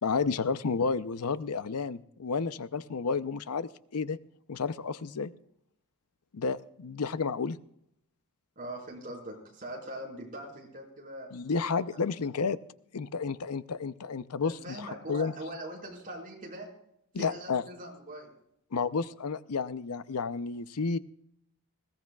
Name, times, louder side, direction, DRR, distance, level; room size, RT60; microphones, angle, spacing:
voice 1, 0.0-4.2 4.5-5.3 6.3-7.6 11.3-12.6 12.9-15.3 17.1-17.6 18.7-21.0, left 5 dB, 85° left, 14 dB, 0.6 m, -31 dB
voice 2, 8.5-11.3 11.9-12.0 14.4-16.7 17.1-18.3, right 1 dB, 40° right, -1 dB, 4.9 m, -42 dB
20.5 x 16.5 x 2.3 m, 0.74 s
head